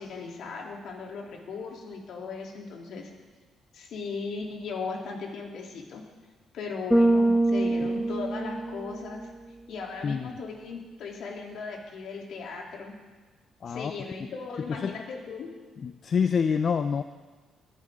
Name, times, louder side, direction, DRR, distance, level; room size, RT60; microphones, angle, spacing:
voice 1, 0.0-3.1 3.7-6.0 6.5-9.3 9.7-12.9 13.7-15.5, left 4 dB, 75° left, -1 dB, 3.2 m, -37 dB
Bass guitar, 6.9-9.2, right 1 dB, ahead, 1.8 m, -24 dB
voice 2, 15.8-17.0, left 6 dB, 50° left, 9 dB, 0.5 m, -26 dB
22.5 x 11.0 x 3.7 m, 1.3 s
cardioid pair, 90°, 0 cm